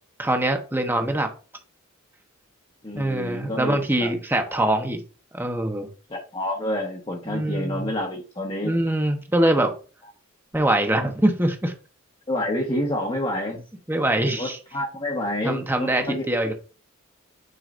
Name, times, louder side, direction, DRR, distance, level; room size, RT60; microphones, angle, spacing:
voice 1, 0.2-1.3 2.9-5.0 5.3-5.9 7.3-7.9 8.6-9.8 10.5-11.7 13.9-14.6 15.4-16.5, right 1 dB, 10° right, 4 dB, 1.0 m, -23 dB
voice 2, 2.8-4.1 4.5-4.7 6.1-8.7 12.3-13.6 14.2-16.5, left 1 dB, 25° left, -2 dB, 1.2 m, -29 dB
9.1 x 4.9 x 2.6 m, 0.35 s
head